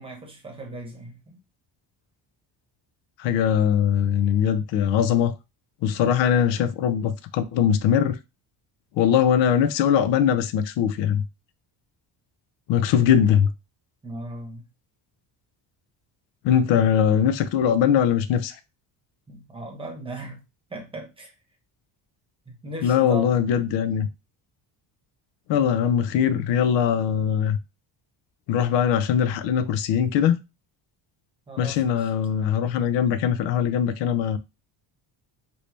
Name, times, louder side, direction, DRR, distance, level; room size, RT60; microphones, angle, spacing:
voice 1, 0.0-1.4 9.3-9.4 14.0-14.6 19.3-20.4 20.7-21.3 22.6-23.4 31.5-32.1, right 2 dB, 10° right, 0.9 m, -37 dB
voice 2, 3.2-5.3 5.8-8.2 9.0-11.2 12.7-13.5 16.4-18.5 22.8-24.1 25.5-27.6 28.5-30.4 31.6-34.4, left 8 dB, 85° left, 0.6 m, -21 dB
3.0 x 2.7 x 3.2 m
cardioid pair, 145°, 43 cm